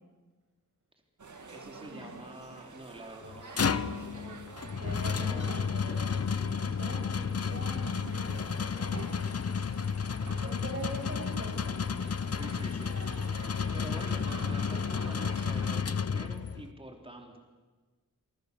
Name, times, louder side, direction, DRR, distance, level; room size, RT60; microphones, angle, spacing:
sound 1, 1.2-15.8, right 4 dB, 60° right, 2.3 m, -48 dB
voice 1, 1.4-4.6 5.1-6.0 12.4-12.9 13.4-17.4, right 1 dB, 15° right, 2 dB, 3.7 m, -47 dB
sound 2, 3.2-16.7, left 6 dB, 45° left, 0.9 m, -32 dB
voice 2, 4.7-9.2 10.4-11.8, right 1 dB, 40° right, 3 dB, 7.1 m, -43 dB
27.5 x 24.5 x 7.1 m, 1.3 s
wide cardioid pair, 105°, 33 cm